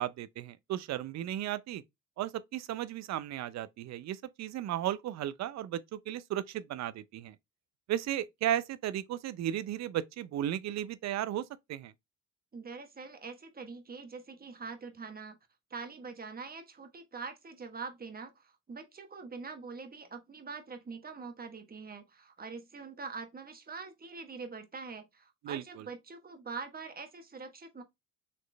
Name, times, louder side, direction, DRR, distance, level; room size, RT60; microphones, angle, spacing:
voice 1, 0.0-1.8 2.2-7.4 7.9-11.9 25.4-25.9, right 12 dB, 55° right, 0.5 m, -35 dB
voice 2, 12.5-15.4 15.7-27.8, right 4 dB, 25° right, 1.2 m, -44 dB
4.1 x 3.1 x 3.3 m
supercardioid pair, 75°, 33 cm